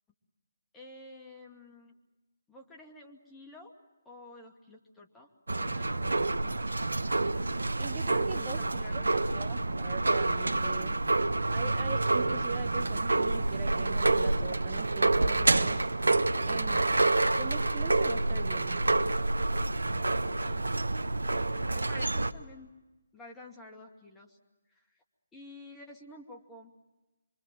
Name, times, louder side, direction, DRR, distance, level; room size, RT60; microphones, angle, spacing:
voice 1, 0.7-1.9 2.5-3.7 4.0-6.7 7.9-9.3 20.4-20.7 21.7-22.7 23.1-24.4 24.7-25.0 25.3-26.7, left 2 dB, 10° left, 0 dB, 2.5 m, -50 dB
sound 1, 5.5-22.3, right 2 dB, 80° right, 1.0 m, -28 dB
voice 2, 7.8-8.6 8.9-11.0 11.5-15.8 16.4-16.9 17.4-18.8, right 6 dB, 25° right, 5 dB, 1.2 m, -42 dB
26.0 x 24.0 x 7.7 m, 1.1 s
figure-of-eight pair, 145°, 0 cm